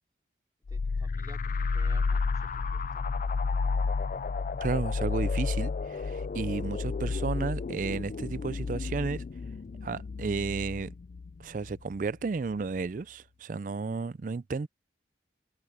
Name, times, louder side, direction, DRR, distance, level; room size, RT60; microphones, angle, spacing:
sound 1, 0.7-12.0, left 4 dB, 45° left, 0.3 m, -31 dB
voice 1, 0.7-3.2, right 1 dB, 20° right, 4.5 m, -54 dB
voice 2, 4.6-9.2 9.8-10.9 11.4-14.7, right 4 dB, 50° right, 0.4 m, -33 dB
head